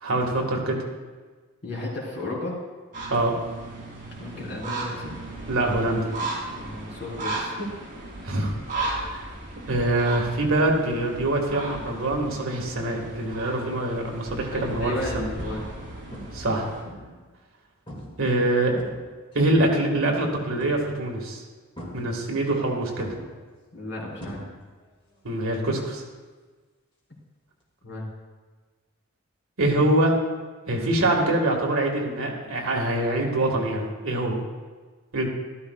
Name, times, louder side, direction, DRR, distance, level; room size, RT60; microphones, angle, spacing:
voice 1, 0.0-0.8 3.1-3.3 5.5-6.1 8.3-8.5 8.8-9.2 9.7-15.3 16.3-16.7 18.2-18.7 19.3-21.4 21.9-23.1 25.2-26.0 29.6-30.2 30.7-34.4 35.1-35.3, right 1 dB, 65° right, 0 dB, 1.8 m, -24 dB
voice 2, 1.6-2.6 4.2-5.2 6.6-7.7 14.5-15.7 21.8-22.2 23.7-24.4 27.8-28.1, left 2 dB, 50° left, -5 dB, 3.7 m, -34 dB
sound 1, 2.9-16.8, right 2 dB, 35° right, 2.6 m, -36 dB
sound 2, 13.1-13.4 14.0-14.1 14.7-15.1 15.4-15.8 16.1-17.3 17.9-18.2 18.5-19.4 20.6-21.1 21.8-22.6 23.0-24.9 25.1-25.5 27.6-27.7, equal, 25° left, 2.2 m, -41 dB
13.5 x 13.0 x 2.4 m, 1.4 s
head